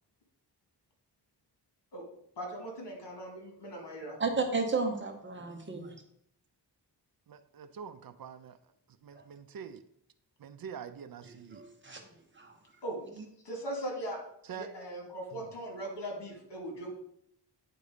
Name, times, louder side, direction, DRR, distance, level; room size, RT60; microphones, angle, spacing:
voice 1, 2.4-4.2 12.8-13.0 13.4-14.2 14.5-16.9, right 1 dB, 80° left, 1 dB, 2.4 m, -39 dB
voice 2, 4.2-5.9 9.2-9.3 11.5-12.1 12.4-12.6 13.2-13.3, right 4 dB, 30° right, 3 dB, 1.0 m, -33 dB
voice 3, 7.3-8.6 9.0-9.8 10.4-11.6 14.4-14.7 15.3-15.5, right 7 dB, 55° right, 11 dB, 0.5 m, -45 dB
9.3 x 4.1 x 5.0 m, 0.72 s
wide cardioid pair, 175°, 41 cm